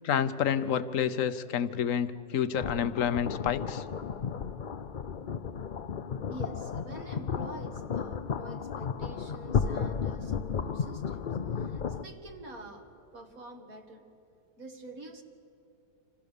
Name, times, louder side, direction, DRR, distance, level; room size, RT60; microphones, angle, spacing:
voice 1, 0.0-3.8, left 8 dB, 55° left, 13 dB, 1.1 m, -29 dB
sound 1, 2.5-12.0, left 6 dB, 75° left, 0.4 m, -33 dB
voice 2, 6.3-14.0 14.6-15.2, right 2 dB, 50° right, 4 dB, 2.4 m, -47 dB
28.5 x 27.0 x 6.8 m, 2.7 s
omnidirectional pair, 1.9 m